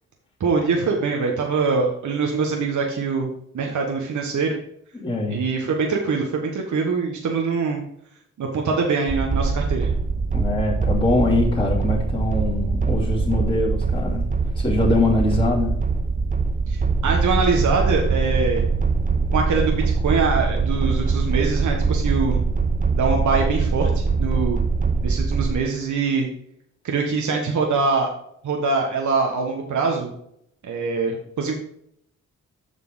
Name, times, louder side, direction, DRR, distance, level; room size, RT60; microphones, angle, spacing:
voice 1, 0.4-3.3 3.5-4.6 5.3-7.8 8.4-9.9 16.7-18.6 19.3-22.4 23.0-24.6 25.0-26.3 26.8-28.1 28.4-30.1 30.6-31.5, right 4 dB, 60° right, 1 dB, 1.4 m, -23 dB
voice 2, 4.9-5.4 10.3-14.3 14.5-15.7, left 2 dB, 15° left, -7 dB, 2.9 m, -23 dB
sound 1, 9.1-25.6, right 4 dB, 25° right, 0.7 m, -22 dB
7.6 x 5.8 x 3.9 m, 0.71 s
supercardioid pair, 50°, 34 cm